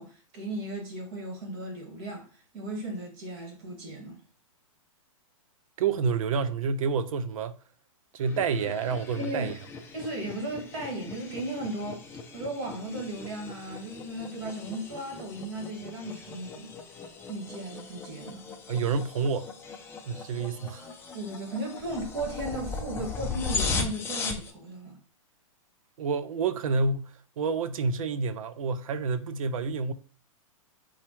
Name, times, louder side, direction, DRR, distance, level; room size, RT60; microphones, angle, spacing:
voice 1, 0.0-2.3 2.5-4.2 9.1-9.5 9.9-12.0 12.3-16.7 17.3-18.4 21.1-25.0, right 1 dB, 45° right, 1.8 m, -36 dB
voice 2, 5.8-7.6 8.1-9.5 18.7-19.5 20.1-20.9 26.0-29.9, right 5 dB, 70° right, 0.5 m, -28 dB
sound 1, 8.2-24.5, left 4 dB, 15° left, 0.5 m, -38 dB
4.1 x 2.3 x 3.0 m
hypercardioid pair, 130°, 18 cm